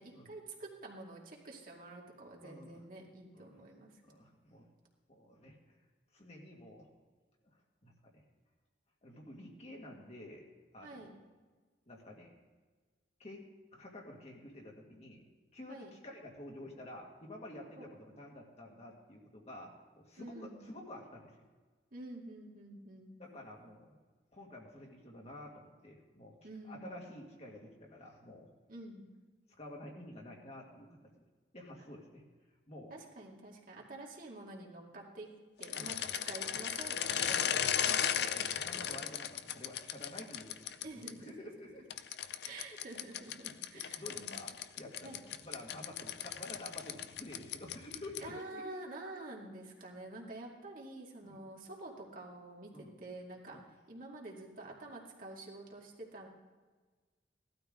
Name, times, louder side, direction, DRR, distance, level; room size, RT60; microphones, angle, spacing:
voice 1, 0.0-4.0 10.8-11.1 15.7-15.9 17.7-17.9 20.2-20.6 21.9-23.1 26.4-26.9 28.7-29.1 32.9-35.3 35.6-36.0 36.3-38.1 40.8-41.3 42.4-44.3 45.0-45.2 48.2-53.6 53.9-56.3, right 2 dB, 50° right, -2 dB, 2.3 m, -48 dB
voice 2, 2.4-2.8 3.3-3.6 4.0-4.7 5.1-5.8 6.1-6.9 7.8-8.2 9.0-10.5 10.7-11.1 11.9-12.4 13.2-13.5 13.7-15.2 15.5-21.4 23.2-24.0 24.3-26.3 26.6-28.5 29.6-30.9 31.2-31.3 31.5-32.2 32.7-32.9 35.7-36.0 37.8-41.9 42.2-42.4 43.6-44.5 44.8-48.6 51.2-51.4 52.7-52.9 53.5-53.6, left 1 dB, 35° left, -1 dB, 2.0 m, -50 dB
sound 1, 35.6-41.1 41.9-48.4, left 9 dB, 65° left, 0.5 m, -36 dB
17.0 x 12.5 x 3.8 m, 1.4 s
head